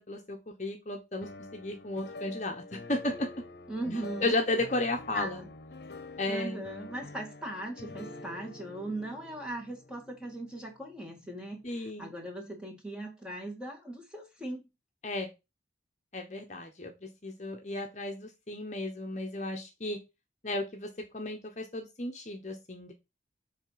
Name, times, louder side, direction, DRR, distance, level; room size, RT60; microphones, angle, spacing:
voice 1, 0.0-3.3 4.2-5.4 6.2-6.8 11.6-12.1 15.0-15.3 16.1-20.0 20.4-22.9, left 2 dB, 40° left, 1.0 m, -34 dB
sound 1, 1.2-11.1, left 2 dB, 65° left, 0.9 m, -46 dB
voice 2, 3.7-4.3 5.1-5.5 6.3-14.6, right 1 dB, 5° right, 2.1 m, -39 dB
8.1 x 3.4 x 5.7 m
head